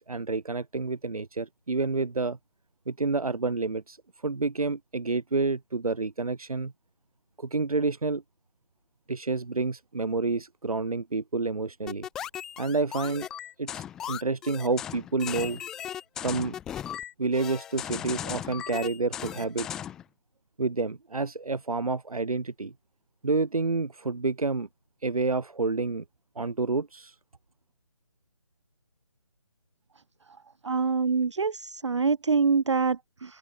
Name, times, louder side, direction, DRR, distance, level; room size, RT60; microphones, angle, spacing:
voice 1, 0.0-2.4 2.9-4.0 4.2-6.7 7.4-8.2 9.1-12.1 12.6-13.3 13.6-15.6 16.2-16.5 17.2-19.8 20.6-22.7 23.2-24.7 25.0-26.0 26.3-27.1, right 3 dB, 80° right, 2.9 m, -29 dB
sound 1, 11.9-20.0, left 10 dB, 5° left, 1.0 m, -37 dB
voice 2, 30.6-33.4, right 5 dB, 55° right, 0.6 m, -25 dB
hypercardioid pair, 175°, 18 cm